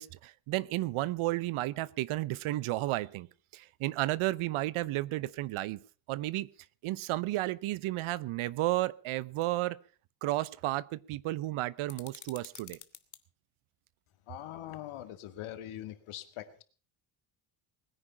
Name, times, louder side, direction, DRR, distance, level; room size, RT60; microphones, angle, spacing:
voice 1, 0.0-3.3 3.5-5.8 6.1-6.5 6.8-9.8 10.2-12.8, right 17 dB, 80° right, 21 dB, 0.9 m, -32 dB
sound 1, 11.9-13.2, left 9 dB, 35° left, 1.3 m, -50 dB
voice 2, 14.3-16.6, left 12 dB, 80° left, 10 dB, 2.1 m, -42 dB
20.5 x 10.0 x 5.6 m, 0.39 s
cardioid pair, 145°, 48 cm